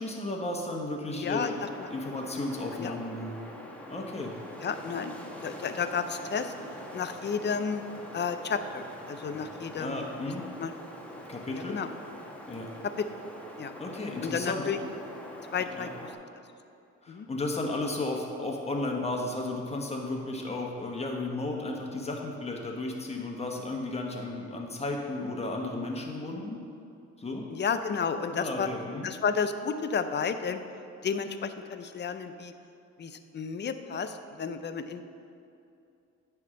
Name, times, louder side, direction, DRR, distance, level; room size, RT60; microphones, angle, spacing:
voice 1, 0.0-1.5 1.9-3.4 3.9-4.3 9.8-10.4 11.3-11.8 12.5-12.7 13.8-14.9 15.6-15.9 17.0-26.6 27.2-27.5 28.3-29.1, left 2 dB, 20° left, 0 dB, 1.2 m, -34 dB
voice 2, 1.1-1.9 2.8-3.0 4.6-6.5 6.9-7.8 8.1-10.0 10.6-10.7 11.5-11.9 12.8-13.1 13.6-13.7 14.2-14.8 15.5-16.1 17.1-17.3 27.5-28.7 29.0-30.6 31.0-32.5 33.0-35.0, left 6 dB, 35° left, 9 dB, 0.5 m, -32 dB
Wind, 1.3-16.1, equal, 5° left, 1.0 m, -44 dB
9.4 x 3.6 x 6.2 m, 2.6 s
cardioid pair, 90°, 30 cm